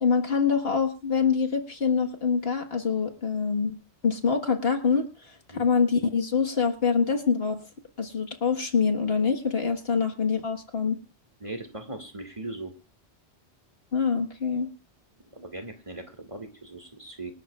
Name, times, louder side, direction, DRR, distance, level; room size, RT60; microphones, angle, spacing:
voice 1, 0.0-3.8 4.0-5.1 5.6-7.6 8.0-11.0 13.9-14.7, left 5 dB, 60° left, 3 dB, 1.8 m, -25 dB
voice 2, 11.4-12.7 15.3-17.3, right 2 dB, 30° right, 5 dB, 2.1 m, -39 dB
26.5 x 12.5 x 2.4 m, 0.30 s
omnidirectional pair, 1.2 m